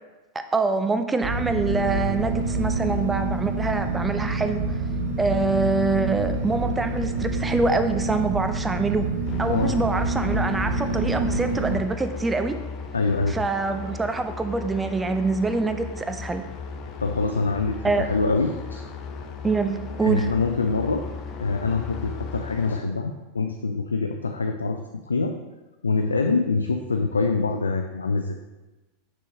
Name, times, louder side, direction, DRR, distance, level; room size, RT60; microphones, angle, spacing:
voice 1, 0.3-4.8 5.2-9.1 9.4-12.6 13.3-16.4 17.8-18.1 19.4-20.3, right 3 dB, 15° right, 8 dB, 0.5 m, -25 dB
sound 1, 1.2-11.8, right 3 dB, 50° right, 1.0 m, -27 dB
sound 2, 9.3-22.8, left 4 dB, 40° left, 0.7 m, -36 dB
voice 2, 12.9-13.4 17.0-18.8 20.0-21.0 21.4-25.3 25.8-28.4, left 3 dB, 85° left, 5 dB, 0.3 m, -25 dB
6.3 x 6.1 x 2.7 m, 1.1 s
figure-of-eight pair, 90°, 0 cm